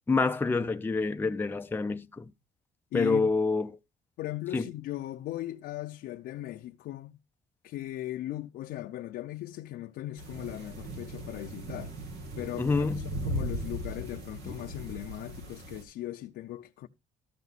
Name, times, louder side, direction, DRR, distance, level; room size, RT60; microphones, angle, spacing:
voice 1, 0.1-2.3 2.9-3.8 4.5-4.7 12.6-13.2 14.5-14.6, left 4 dB, 10° left, 0.5 m, -27 dB
voice 2, 2.9-3.3 4.2-7.2 7.6-12.0 12.4-16.9, left 14 dB, 70° left, 0.6 m, -38 dB
sound 1, 10.2-15.8, right 1 dB, 80° right, 2.2 m, -38 dB
13.5 x 5.2 x 4.1 m
cardioid pair, 110°, 17 cm